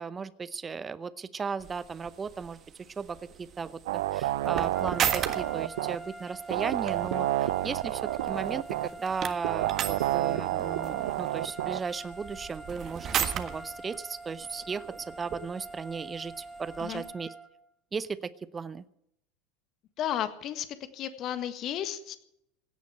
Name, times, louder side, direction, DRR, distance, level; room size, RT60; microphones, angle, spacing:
voice 1, 0.0-2.6 3.0-14.9 15.2-17.3 17.9-18.8, right 5 dB, 25° right, 16 dB, 0.7 m, -36 dB
sound 1, 1.6-17.1, right 9 dB, 40° right, 1.5 m, -38 dB
sound 2, 3.9-6.0 6.5-8.9 9.4-11.8, right 16 dB, 65° right, 0.5 m, -29 dB
sound 3, 4.7-17.6, right 2 dB, ahead, 2.2 m, -45 dB
voice 2, 20.0-20.7 20.9-22.2, left 10 dB, 45° left, 11 dB, 1.6 m, -33 dB
17.0 x 9.3 x 8.1 m, 0.76 s
figure-of-eight pair, 75°, 0 cm